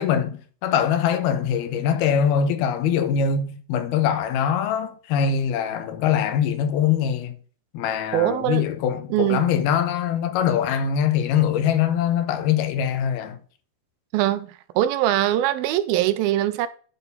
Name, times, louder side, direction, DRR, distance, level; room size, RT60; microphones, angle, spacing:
voice 1, 0.0-7.4 7.7-13.4, left 8 dB, 85° left, 3.0 m, -23 dB
voice 2, 8.1-8.6 9.1-9.4 14.1-16.7, right 13 dB, 85° right, 2.5 m, -22 dB
11.0 x 4.6 x 5.4 m
omnidirectional pair, 4.3 m